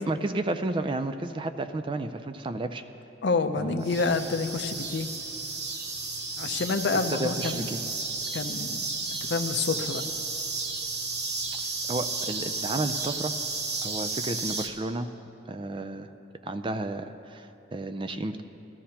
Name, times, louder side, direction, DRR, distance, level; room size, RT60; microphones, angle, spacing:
voice 1, 0.0-2.8 3.6-3.8 7.1-7.8 11.6-13.3 13.8-15.1 15.5-16.1 16.4-18.4, right 2 dB, 25° right, 9 dB, 0.4 m, -32 dB
voice 2, 3.2-5.1 6.4-7.9 8.3-8.9 9.2-10.0, left 4 dB, 60° left, 7 dB, 0.6 m, -28 dB
sound 1, 3.8-14.7, right 3 dB, 55° right, 1.0 m, -33 dB
18.5 x 13.0 x 2.9 m, 2.8 s
head